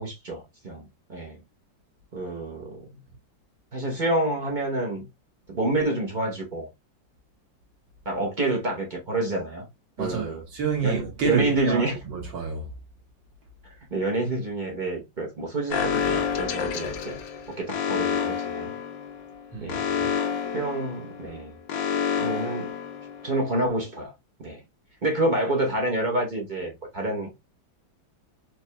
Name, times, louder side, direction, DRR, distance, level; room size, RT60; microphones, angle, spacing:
voice 1, 0.0-1.4 2.1-3.0 3.7-5.1 5.5-6.7 8.0-9.7 10.0-10.4 10.8-12.0 13.9-17.2 17.5-18.7 19.6-20.2 20.5-21.5 22.2-22.7 23.2-24.1 24.4-24.6 25.0-27.3, right 2 dB, 45° right, 0.6 m, -28 dB
voice 2, 10.0-12.7 19.5-19.8, right 6 dB, 75° right, 2.1 m, -28 dB
Alarm, 15.7-23.5, left 7 dB, 80° left, 1.4 m, -29 dB
4.7 x 2.8 x 2.2 m
omnidirectional pair, 2.0 m